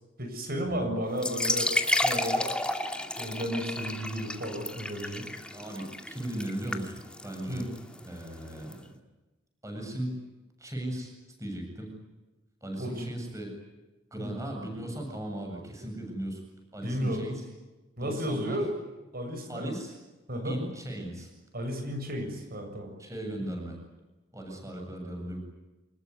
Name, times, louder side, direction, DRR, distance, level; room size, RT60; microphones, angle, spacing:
voice 1, 0.2-2.4 3.2-5.3 7.5-7.7 12.8-13.1 14.2-14.4 16.8-17.2 18.0-18.7 19.1-19.7 20.3-20.6 21.5-22.9, equal, 50° right, 5 dB, 7.5 m, -33 dB
sound 1, 1.1-8.7, left 1 dB, 5° left, 2.2 m, -32 dB
voice 2, 5.5-7.7 8.0-8.8 9.6-10.2 10.6-11.1 11.4-11.9 12.6-13.6 14.1-16.4 16.7-17.4 18.0-18.6 19.5-19.9 20.4-21.3 23.0-23.8 24.3-25.4, right 1 dB, 15° right, 2 dB, 7.6 m, -37 dB
26.5 x 21.0 x 9.7 m, 1.1 s
head